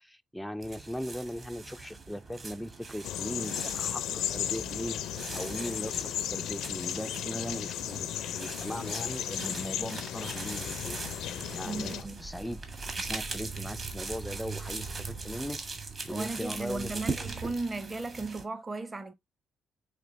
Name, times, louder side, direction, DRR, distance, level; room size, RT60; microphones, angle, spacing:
voice 1, 0.0-11.0 11.5-12.6 13.0-15.6 16.1-17.0, equal, ahead, 0.3 m, -39 dB
sound 1, 0.6-18.4, right 3 dB, 40° right, 1.5 m, -42 dB
sound 2, 3.0-12.0, left 10 dB, 80° left, 0.5 m, -35 dB
sound 3, 10.9-17.6, right 4 dB, 80° right, 2.7 m, -43 dB
voice 2, 11.6-12.2 16.1-19.1, right 3 dB, 25° right, 0.8 m, -35 dB
5.1 x 3.3 x 3.1 m
cardioid pair, 85°, 0 cm